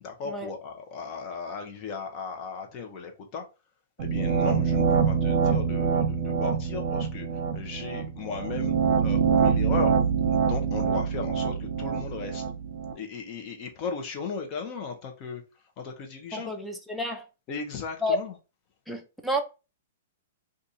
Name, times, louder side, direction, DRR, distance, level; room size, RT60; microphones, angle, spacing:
voice 1, 0.0-3.4 4.0-7.3 7.5-8.7 9.0-9.9 10.3-12.4 12.9-15.4 15.8-16.5 17.5-18.3, left 5 dB, 35° left, 0.8 m, -36 dB
sound 1, 4.0-12.9, right 6 dB, 45° right, 1.0 m, -25 dB
voice 2, 16.3-17.3 18.0-18.2 18.9-19.4, equal, ahead, 0.5 m, -30 dB
2.5 x 2.5 x 4.1 m
hypercardioid pair, 140°, 0 cm